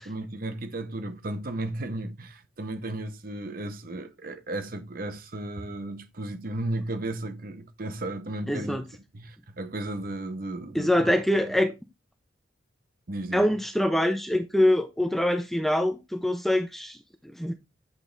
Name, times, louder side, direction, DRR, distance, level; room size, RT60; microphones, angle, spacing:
voice 1, 0.0-8.8 9.1-11.4 13.1-13.6, right 1 dB, 45° right, 0.8 m, -34 dB
voice 2, 8.5-8.8 10.7-11.7 13.3-17.0 17.4-17.5, left 1 dB, ahead, 0.5 m, -24 dB
8.0 x 3.4 x 3.8 m
head